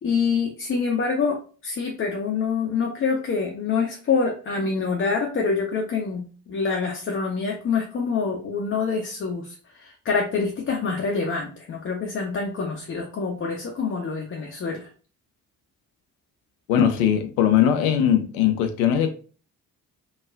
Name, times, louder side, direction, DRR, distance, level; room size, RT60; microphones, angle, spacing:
voice 1, 0.0-1.4 1.6-14.9, left 5 dB, 30° left, 0.6 m, -26 dB
voice 2, 16.7-19.1, left 9 dB, 70° left, 0.6 m, -20 dB
2.8 x 2.3 x 2.4 m
figure-of-eight pair, 40°, 46 cm